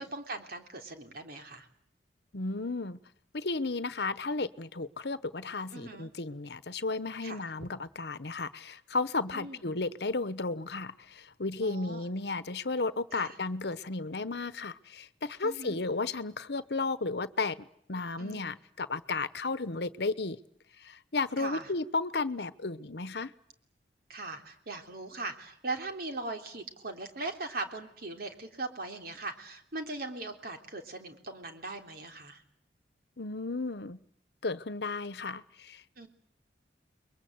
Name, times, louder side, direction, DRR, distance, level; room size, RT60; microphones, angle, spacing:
voice 1, 0.0-1.7 5.7-6.1 7.2-7.4 9.3-9.6 11.6-12.0 13.1-13.3 15.4-15.8 18.2-18.5 21.4-21.7 24.1-32.4 36.0-36.1, right 2 dB, 60° right, 3.4 m, -40 dB
voice 2, 2.3-3.0 3.3-17.6 17.9-20.4 20.8-23.3 33.2-34.0 34.4-35.8, left 3 dB, 65° left, 1.1 m, -33 dB
29.5 x 22.5 x 8.0 m
head